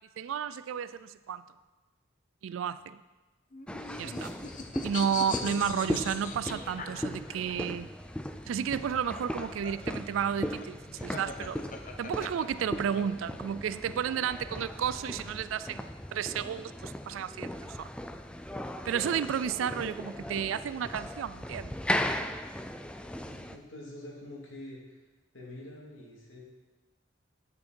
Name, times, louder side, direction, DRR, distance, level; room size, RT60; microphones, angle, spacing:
voice 1, 0.2-1.4 2.4-3.0 4.0-4.3 4.8-7.9 8.5-11.6 12.0-17.9 18.8-21.8, right 8 dB, 85° right, 15 dB, 0.3 m, -32 dB
sound 1, 3.5-7.5 8.8-13.0, left 4 dB, 40° left, 0.8 m, -40 dB
sound 2, 3.7-23.6, left 1 dB, 5° left, 0.3 m, -38 dB
voice 2, 23.2-25.0 25.3-26.4, left 1 dB, 85° left, -3 dB, 2.5 m, -46 dB
10.5 x 6.6 x 4.4 m, 1.2 s
head